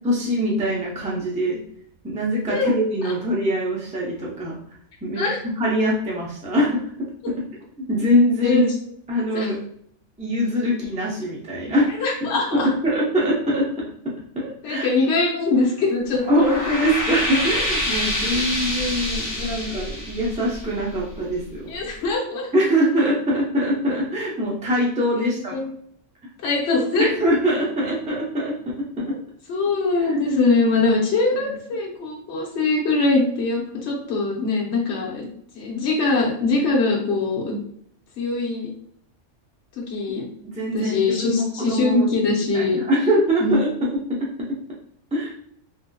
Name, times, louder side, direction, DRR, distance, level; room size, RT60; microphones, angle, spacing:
voice 1, 0.0-1.6 2.0-4.6 5.0-5.2 5.6-7.4 7.9-8.7 9.1-9.6 10.2-11.9 12.5-14.9 16.3-21.6 22.5-25.6 27.0-29.1 30.1-30.2 31.4-31.5 40.6-42.1 42.5-44.5 45.1-45.3, equal, 10° right, -4 dB, 0.5 m, -23 dB
voice 2, 12.0-12.7 14.6-16.2 18.3-18.4 21.7-22.5 25.2-25.7 26.4-27.1 29.1-29.2 29.5-35.3 35.5-37.6 38.2-38.7 39.9-40.2 40.7-42.8 43.4-43.6, left 3 dB, 65° left, -2 dB, 1.0 m, -22 dB
sound 1, 16.1-21.3, left 1 dB, 15° left, 1.0 m, -27 dB
3.4 x 2.6 x 2.2 m, 0.65 s
omnidirectional pair, 1.3 m